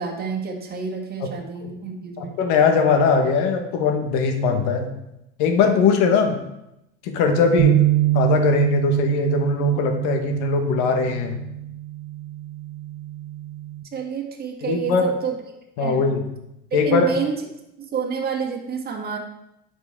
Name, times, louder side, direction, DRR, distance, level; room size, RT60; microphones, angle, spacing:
voice 1, 0.0-2.4 13.9-15.3 15.8-16.1 16.7-17.4 17.8-19.2, right 6 dB, 30° right, 0 dB, 1.8 m, -29 dB
voice 2, 2.2-4.9 5.4-6.4 7.0-7.8 8.1-11.4 14.6-15.1 15.8-16.2 16.7-17.1, left 4 dB, 70° left, 5 dB, 1.6 m, -20 dB
sound 1, 7.6-13.8, right 14 dB, 45° right, 1.2 m, -24 dB
9.4 x 6.1 x 3.7 m, 0.86 s
supercardioid pair, 120°, 32 cm